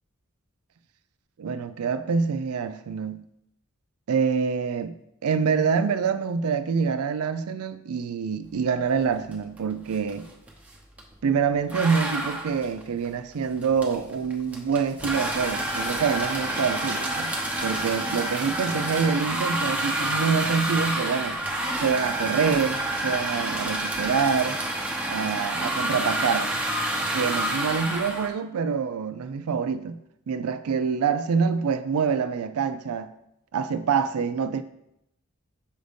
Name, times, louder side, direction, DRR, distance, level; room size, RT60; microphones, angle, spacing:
voice 1, 1.4-3.2 4.1-5.0 5.2-10.3 11.2-17.3 17.6-21.4 21.8-24.6 25.1-26.5 27.1-30.0 30.3-33.1 33.5-34.6, right 6 dB, 90° right, 12 dB, 0.4 m, -26 dB
sound 1, 9.3-9.6 9.8-11.1 11.7-28.3, right 1 dB, 5° right, 0.7 m, -28 dB
7.0 x 2.7 x 5.0 m, 0.80 s
head